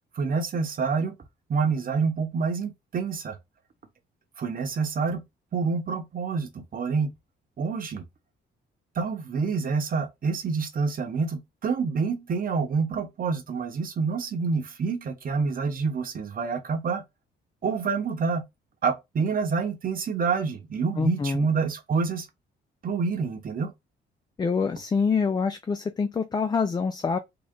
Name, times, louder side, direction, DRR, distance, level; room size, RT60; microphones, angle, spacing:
voice 1, 0.1-1.1 1.5-3.4 4.4-5.2 5.5-7.1 7.6-8.0 8.9-17.0 17.6-18.4 18.8-22.3 22.8-23.7, right 5 dB, 45° right, 1.0 m, -27 dB
voice 2, 21.0-21.5 24.4-27.2, left 5 dB, 20° left, 0.3 m, -26 dB
3.8 x 2.1 x 3.6 m
cardioid pair, 90°, 20 cm